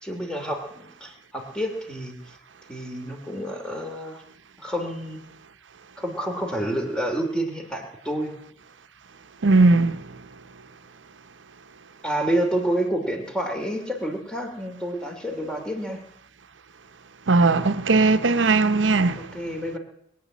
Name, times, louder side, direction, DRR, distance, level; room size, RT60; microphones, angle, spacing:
voice 1, 0.0-2.2 2.7-4.2 4.6-5.2 6.0-8.3 12.0-16.0 19.2-19.8, right 1 dB, 5° left, 2.7 m, -29 dB
voice 2, 9.4-10.0 17.3-19.3, right 3 dB, 85° right, 0.8 m, -18 dB
21.0 x 9.3 x 7.3 m
head